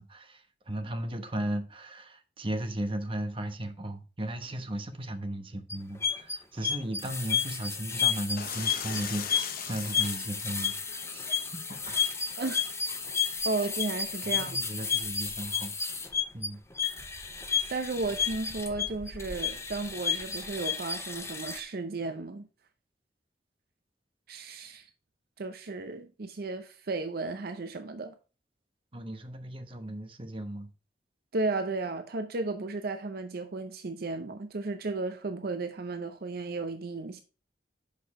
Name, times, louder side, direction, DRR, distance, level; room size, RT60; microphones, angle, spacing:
voice 1, 0.0-12.0 14.2-15.7 16.3-16.6 28.9-30.7, right 1 dB, 30° right, 1.0 m, -36 dB
sound 1, 5.7-21.6, left 7 dB, 15° left, 0.8 m, -32 dB
sound 2, 8.4-13.8, left 8 dB, 55° left, 0.9 m, -42 dB
voice 2, 12.4-12.7 13.4-14.6 17.7-22.5 24.3-24.9 25.4-28.1 31.3-37.2, right 3 dB, 60° right, 0.6 m, -34 dB
6.5 x 5.4 x 4.8 m
head